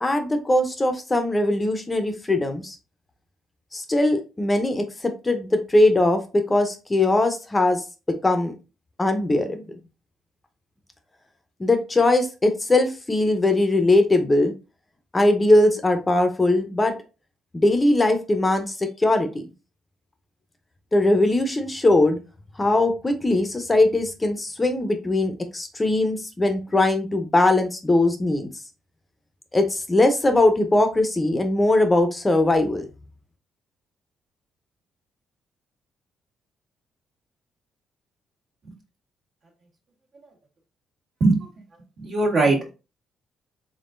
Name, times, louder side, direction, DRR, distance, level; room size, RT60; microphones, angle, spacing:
voice 1, 0.0-2.8 3.7-7.8 8.2-8.5 9.0-9.6 11.6-14.5 15.1-16.9 17.5-19.4 20.9-22.2 22.6-28.5 29.5-32.9, left 2 dB, 20° left, 6 dB, 0.7 m, -20 dB
voice 2, 42.0-42.7, right 3 dB, 60° right, -1 dB, 1.5 m, -20 dB
3.7 x 3.6 x 2.5 m, 0.31 s
cardioid pair, 90°, 0 cm